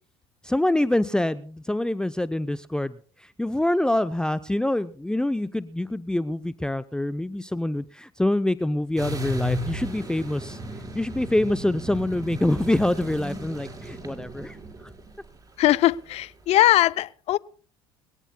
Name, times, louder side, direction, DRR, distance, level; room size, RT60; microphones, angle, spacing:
voice 1, 0.4-2.9 3.2-10.6 10.9-14.6, left 1 dB, 5° left, 13 dB, 0.6 m, -25 dB
sound 1, 9.0-16.3, equal, 30° right, 4.5 m, -35 dB
voice 2, 15.6-17.4, left 15 dB, 55° left, 19 dB, 0.5 m, -20 dB
23.5 x 17.5 x 2.2 m, 0.42 s
hypercardioid pair, 65°, 13 cm